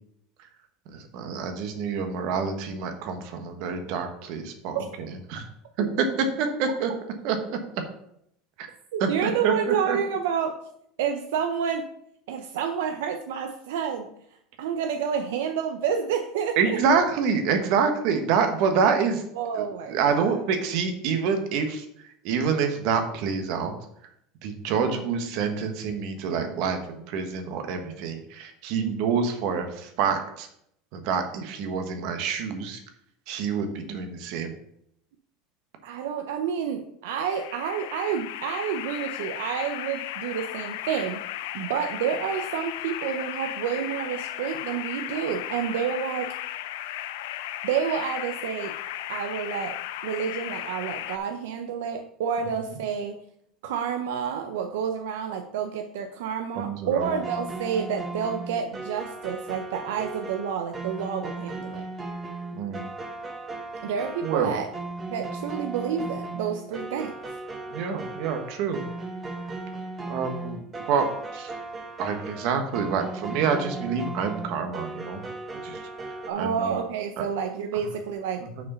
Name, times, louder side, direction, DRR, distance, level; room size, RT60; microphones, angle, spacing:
voice 1, 0.9-5.4 5.8-6.9 7.2-7.6 8.6-8.7 9.0-10.0 16.6-19.2 19.5-21.9 22.2-23.7 24.4-30.5 30.9-32.8 33.3-34.5 56.6-57.1 62.5-62.9 64.2-64.6 67.7-68.8 70.1-70.6 70.9-71.5 72.0-75.2 75.6-75.9 76.4-76.8 77.7-77.8 78.6-78.7, right 6 dB, 60° right, 6 dB, 1.2 m, -27 dB
voice 2, 8.9-10.6 11.0-11.9 12.3-14.1 14.6-16.8 19.4-20.4 24.9-25.1 28.8-29.1 35.8-41.2 41.5-46.3 47.6-48.7 49.1-53.1 53.6-61.8 63.8-64.7 65.1-67.2 76.3-78.6, right 7 dB, 85° right, 5 dB, 0.6 m, -29 dB
sound 1, 37.2-51.2, left 13 dB, 75° left, 0.5 m, -35 dB
sound 2, 57.0-76.3, right 2 dB, 20° right, 1.1 m, -36 dB
6.0 x 4.9 x 5.5 m, 0.73 s
supercardioid pair, 145°, 0 cm